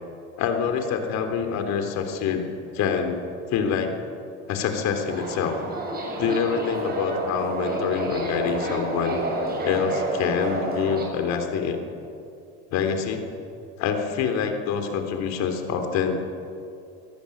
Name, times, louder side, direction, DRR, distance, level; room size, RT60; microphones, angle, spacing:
voice 1, 0.4-2.5 2.7-3.2 3.5-3.9 4.5-5.6 6.2-9.2 9.6-11.8 12.7-13.2 13.8-16.3, left 7 dB, 60° left, 6 dB, 3.5 m, -26 dB
Subway metro underground, 5.1-11.0, right 2 dB, 30° right, 6.8 m, -29 dB
25.0 x 16.0 x 8.7 m, 2.6 s
cardioid pair, 120°, 31 cm